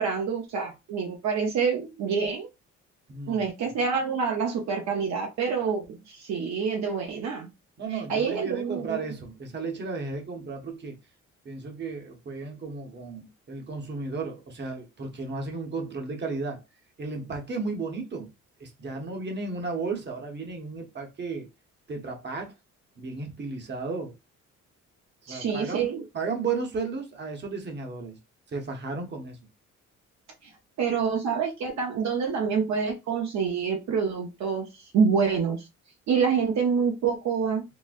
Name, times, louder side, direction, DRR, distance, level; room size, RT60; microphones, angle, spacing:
voice 1, 0.0-2.5 3.3-7.5 8.1-9.0 25.3-26.0 30.8-35.7 36.1-37.6, right 6 dB, 65° right, 0.7 m, -27 dB
voice 2, 3.1-3.4 7.8-11.0 11.4-16.6 17.0-18.3 18.6-21.5 21.9-22.5 23.0-24.1 25.2-28.2 28.5-29.4, right 4 dB, 35° right, 0.9 m, -34 dB
3.8 x 2.0 x 2.5 m
cardioid pair, 90°, 30 cm